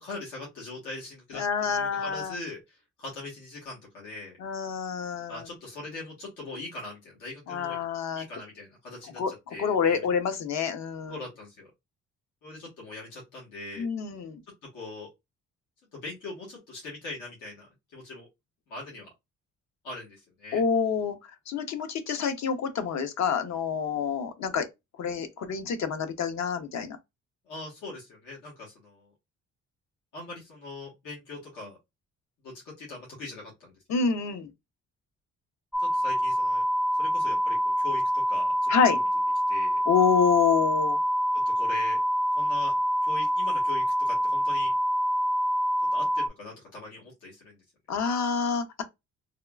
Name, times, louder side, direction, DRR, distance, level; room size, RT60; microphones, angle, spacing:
voice 1, 0.0-1.4 1.7-4.4 5.3-7.8 8.1-10.0 11.1-11.7 12.4-13.9 14.7-15.1 15.9-17.7 17.9-18.3 18.7-19.1 19.8-20.6 27.5-29.1 30.1-31.8 32.4-33.7 35.8-36.6 37.0-39.0 39.5-39.8 41.6-42.0 42.3-42.7 43.0-44.7 45.9-47.6, left 2 dB, 90° left, 1.4 m, -41 dB
voice 2, 1.3-2.4 4.4-5.5 7.5-8.2 9.2-11.2 13.8-14.4 20.5-21.2 21.5-24.7 25.0-27.0 33.9-34.5 38.7-39.0 39.9-41.0 47.9-48.8, left 6 dB, 65° left, 0.7 m, -27 dB
sound 1, 35.7-46.3, equal, ahead, 0.5 m, -26 dB
3.5 x 2.3 x 2.3 m
cardioid pair, 90°, 30 cm